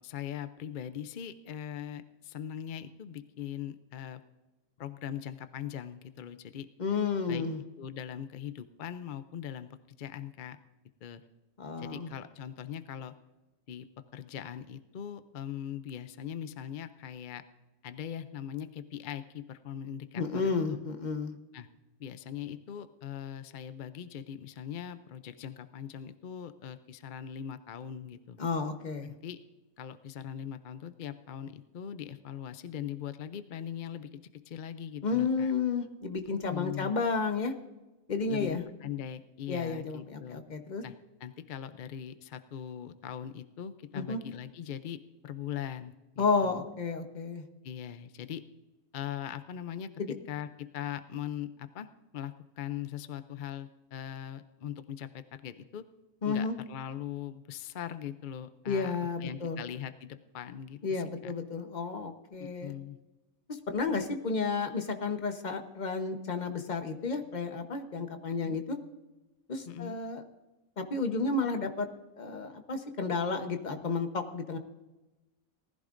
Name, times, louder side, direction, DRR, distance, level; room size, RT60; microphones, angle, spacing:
voice 1, 0.0-4.2 4.8-6.7 7.3-7.4 7.8-10.6 11.0-11.2 11.8-13.1 13.7-17.4 17.8-20.8 21.5-21.7 22.0-28.4 29.0-29.4 29.8-35.5 36.5-36.9 38.3-40.4 40.8-40.9 41.2-46.6 47.6-48.4 48.9-51.9 52.1-55.8 56.2-61.3 62.4-63.0 68.4-68.6 69.7-70.0, left 9 dB, 60° left, 11 dB, 0.5 m, -41 dB
voice 2, 6.8-7.6 11.6-12.1 20.2-21.4 28.4-29.1 35.0-37.5 38.1-38.6 39.5-40.8 43.9-44.2 46.2-47.5 50.0-50.1 56.2-56.6 58.7-59.6 60.8-62.7 63.5-68.8 69.5-70.2 70.8-71.9 72.2-74.6, left 4 dB, 35° left, 6 dB, 1.1 m, -32 dB
19.0 x 14.5 x 2.6 m, 1.1 s
omnidirectional pair, 1.5 m